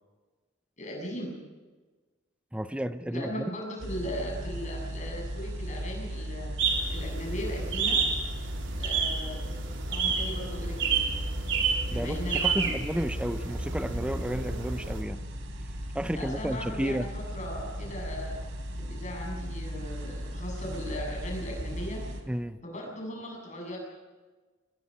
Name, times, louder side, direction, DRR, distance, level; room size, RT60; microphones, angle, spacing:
voice 1, 0.8-1.3 3.1-6.5 6.9-8.0 8.8-9.4 9.9-11.1 11.9-12.8 16.1-18.4 18.8-22.0 22.6-23.8, equal, 35° left, 0 dB, 7.4 m, -38 dB
voice 2, 2.5-3.5 11.9-15.2 15.9-17.1 22.3-22.6, equal, 5° right, 12 dB, 0.6 m, -32 dB
sound 1, 3.8-22.2, equal, 85° right, 3.6 m, -37 dB
sound 2, 6.6-15.0, right 5 dB, 65° right, 3.5 m, -30 dB
25.5 x 20.5 x 5.6 m, 1.3 s
head